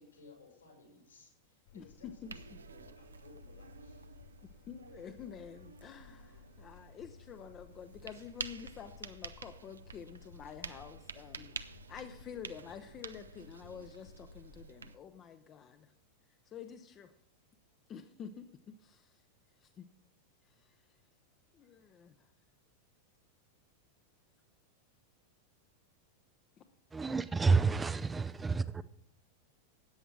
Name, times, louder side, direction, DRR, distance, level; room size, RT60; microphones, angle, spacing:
voice 1, 0.0-4.1, left 3 dB, 75° left, 5.8 m, -59 dB
sound 1, 1.7-14.6, left 5 dB, 60° left, 2.9 m, -59 dB
voice 2, 1.7-2.6 4.7-11.5 11.9-15.9 16.4-17.1 17.9-18.5 18.8-19.2 19.6-19.8 20.5-20.8 21.5-22.3, left 8 dB, 30° left, 0.7 m, -49 dB
sound 2, 2.2-15.0, right 4 dB, 75° right, 0.6 m, -49 dB
voice 3, 26.9-28.8, right 4 dB, 15° right, 0.4 m, -29 dB
13.5 x 9.0 x 4.8 m
figure-of-eight pair, 90°, 0 cm